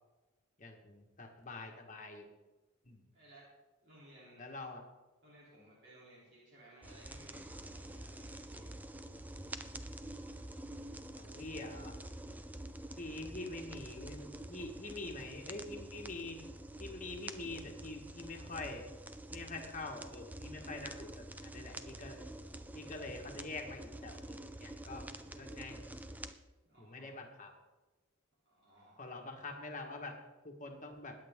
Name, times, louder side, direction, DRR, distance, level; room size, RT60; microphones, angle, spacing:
voice 1, 0.6-2.3 2.8-3.0 4.4-4.8 11.2-11.9 13.0-16.4 16.8-18.8 19.3-21.1 21.4-22.2 22.7-25.0 25.4-25.8 26.8-27.5 29.0-30.1 30.4-31.1, left 2 dB, 35° left, 2 dB, 1.6 m, -45 dB
voice 2, 3.1-3.5 3.8-4.4 5.2-8.8 12.9-13.2 14.8-15.1 25.1-25.4 26.6-27.1 28.4-29.0, right 1 dB, 55° right, -6 dB, 3.4 m, -60 dB
sound 1, 6.8-26.3, right 1 dB, 10° right, 0.4 m, -47 dB
20.5 x 8.6 x 3.7 m, 1.2 s
head